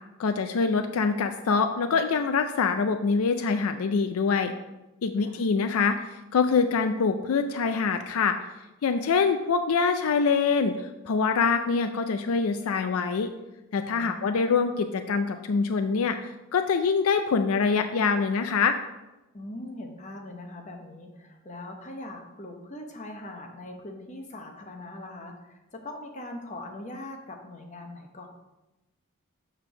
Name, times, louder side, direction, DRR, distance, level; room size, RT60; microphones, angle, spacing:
voice 1, 0.2-4.5 5.0-6.0 6.3-8.4 8.8-13.3 13.7-16.2 16.5-18.8, left 5 dB, 75° left, 8 dB, 0.4 m, -24 dB
voice 2, 13.9-14.5 19.3-28.3, left 1 dB, 30° left, 2 dB, 0.8 m, -41 dB
6.6 x 3.4 x 6.0 m, 1.0 s
head